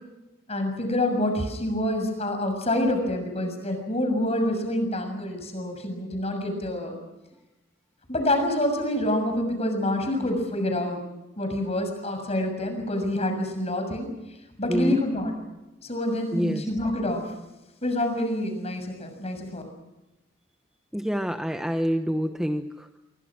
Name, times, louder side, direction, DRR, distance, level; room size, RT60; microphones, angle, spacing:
voice 1, 0.5-7.0 8.1-11.0 11.4-14.1 14.6-15.3 15.8-17.3 17.8-19.6, left 1 dB, 35° left, 6 dB, 6.7 m, -27 dB
voice 2, 14.7-15.0 16.3-16.7 20.9-23.0, equal, 5° right, 6 dB, 1.1 m, -27 dB
27.5 x 24.0 x 6.2 m, 1.0 s
head